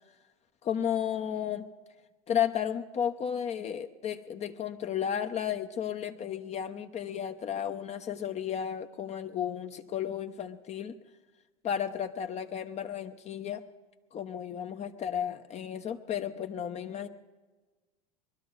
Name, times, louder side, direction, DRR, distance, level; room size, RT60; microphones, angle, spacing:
voice 1, 0.6-1.7 2.3-10.9 11.6-13.6 14.1-17.1, left 9 dB, 35° left, 6 dB, 0.9 m, -33 dB
23.0 x 12.0 x 4.0 m, 1.2 s
hypercardioid pair, 90°, 19 cm